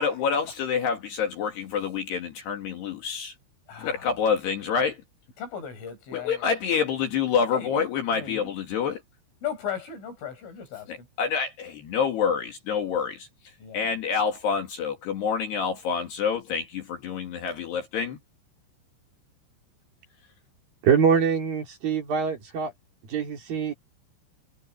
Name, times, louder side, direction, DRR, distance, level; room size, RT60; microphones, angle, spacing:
voice 1, 0.0-3.4 3.8-5.0 6.1-9.0 10.9-18.2, left 6 dB, 60° left, 4.0 m, -27 dB
voice 2, 3.7-4.0 5.4-6.4 7.5-7.8 8.1-8.5 9.4-10.9 13.6-13.8, left 8 dB, 75° left, 9.1 m, -36 dB
voice 3, 20.8-22.7 23.1-23.7, right 7 dB, 50° right, 4.7 m, -24 dB
omnidirectional pair, 5.6 m